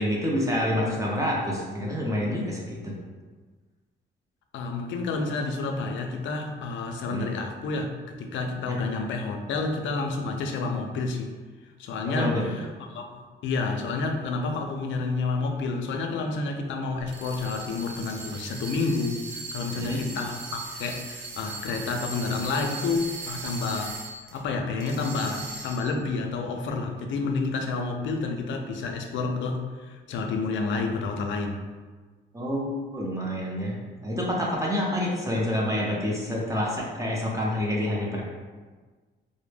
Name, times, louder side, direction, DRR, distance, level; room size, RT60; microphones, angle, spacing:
voice 1, 0.0-2.9 7.1-7.3 12.1-12.4 19.8-20.0 32.3-38.2, left 1 dB, 15° right, -4 dB, 0.6 m, -28 dB
voice 2, 4.5-11.4 11.8-24.0 24.3-31.7, left 3 dB, 70° left, 3 dB, 0.4 m, -29 dB
sound 1, 17.0-24.4 24.8-26.0, right 3 dB, 60° right, 0.6 m, -39 dB
2.1 x 2.1 x 3.2 m, 1.4 s
cardioid pair, 90°, 20 cm